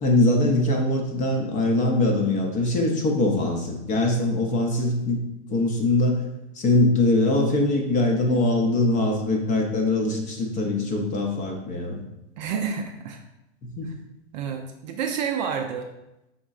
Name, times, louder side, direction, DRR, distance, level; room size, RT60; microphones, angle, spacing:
voice 1, 0.0-5.2 5.5-6.2 6.6-12.0 13.6-13.9, left 2 dB, 20° left, 1 dB, 0.6 m, -22 dB
voice 2, 12.4-13.2 13.8-13.9 14.3-15.9, right 7 dB, 40° right, 3 dB, 0.5 m, -29 dB
5.4 x 3.6 x 2.4 m, 0.90 s
hypercardioid pair, 125°, 36 cm